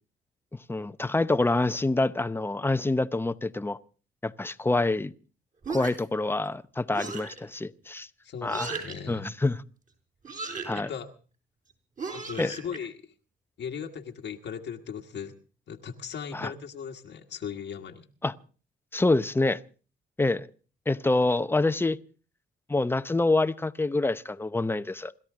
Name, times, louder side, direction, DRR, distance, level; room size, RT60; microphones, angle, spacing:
voice 1, 0.7-3.8 4.2-5.1 5.7-8.1 8.4-8.8 9.1-9.6 10.6-10.9 12.4-12.5 16.3-16.5 18.2-18.3 18.9-19.6 20.2-20.5 20.9-22.0 22.7-25.1, left 2 dB, 10° left, 0.7 m, -26 dB
sound 1, 5.6-6.2 6.9-7.4 8.5-9.0 10.2-10.8 12.0-12.8, right 4 dB, 40° right, 5.9 m, -36 dB
voice 2, 8.2-9.3 10.7-11.1 12.1-13.1 13.6-15.3 15.7-18.1, left 7 dB, 65° left, 1.5 m, -38 dB
27.5 x 13.0 x 3.7 m
cardioid pair, 90°, 20 cm